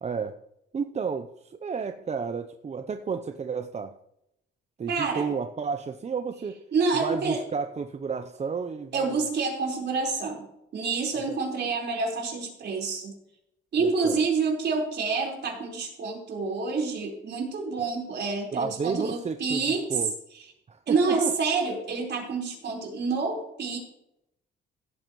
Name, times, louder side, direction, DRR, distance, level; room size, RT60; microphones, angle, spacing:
voice 1, 0.0-0.4 0.7-3.9 4.8-6.6 7.0-9.3 11.2-11.4 13.8-14.2 18.5-19.6 19.9-20.1 20.7-21.3, right 5 dB, 35° right, 7 dB, 0.7 m, -32 dB
voice 2, 4.9-5.3 6.7-7.4 8.9-10.5 10.7-13.1 13.7-20.0 20.3-20.4 20.9-23.8, right 4 dB, 60° right, 0 dB, 4.6 m, -28 dB
16.5 x 8.8 x 3.1 m, 0.80 s
cardioid pair, 90°, 20 cm